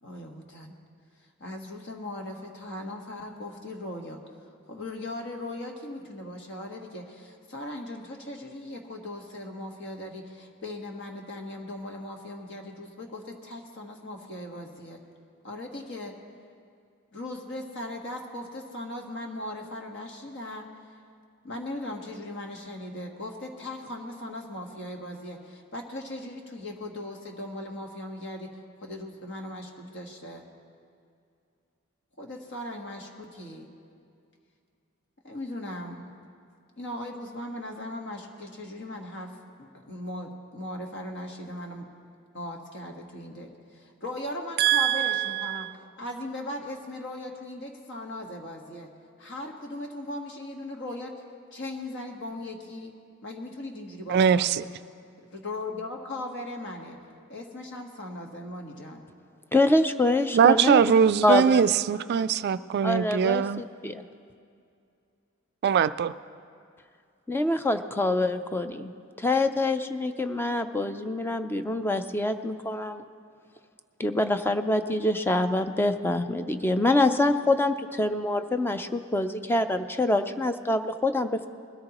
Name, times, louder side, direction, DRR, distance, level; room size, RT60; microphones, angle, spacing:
voice 1, 0.0-0.7 1.4-4.2 4.7-15.0 15.4-16.1 17.1-20.7 21.4-28.5 28.8-30.4 32.2-33.7 35.2-36.1 36.8-39.3 39.6-41.9 42.3-45.7 46.0-48.9 49.2-51.2 51.5-52.9 53.2-54.6 55.2-57.0 57.3-59.0, left 1 dB, 60° left, 2 dB, 1.5 m, -38 dB
voice 2, 44.6-45.7 54.1-54.6 60.3-63.6 65.6-66.1, right 7 dB, 50° right, 14 dB, 0.3 m, -22 dB
voice 3, 59.5-60.8 61.2-61.6 62.8-64.0 67.3-68.9 69.2-73.0 74.0-81.5, left 2 dB, 10° left, 8 dB, 0.5 m, -25 dB
20.5 x 13.5 x 3.0 m, 2.4 s
head